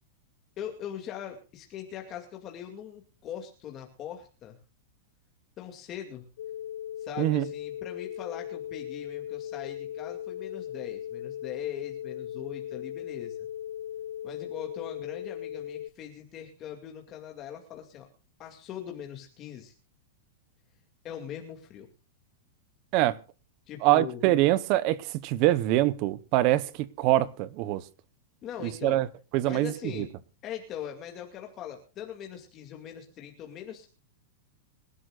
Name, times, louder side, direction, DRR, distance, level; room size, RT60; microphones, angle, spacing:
voice 1, 0.6-4.6 5.6-6.2 7.0-13.5 14.2-18.1 18.4-19.7 21.0-21.9 23.7-24.3 28.4-29.0 29.4-30.1 30.4-33.9, left 9 dB, 25° left, 2.3 m, -41 dB
sound 1, 6.4-15.9, left 11 dB, 60° left, 0.7 m, -38 dB
voice 2, 23.8-27.8 28.8-29.1 29.3-30.0, right 15 dB, 35° right, 0.8 m, -24 dB
26.5 x 12.5 x 2.4 m
supercardioid pair, 170°, 0 cm